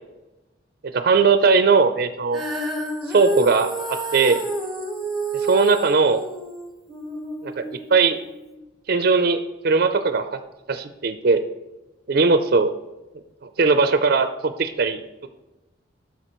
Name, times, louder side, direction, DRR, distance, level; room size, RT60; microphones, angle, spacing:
voice 1, 0.9-2.4 3.1-4.4 5.3-6.2 7.4-8.2 8.9-10.4 10.7-11.4 12.1-12.7 13.4-15.0, right 4 dB, 50° right, 9 dB, 0.4 m, -19 dB
Female singing, 2.3-8.6, right 1 dB, ahead, 1.2 m, -29 dB
11.0 x 6.9 x 3.0 m, 1.0 s
head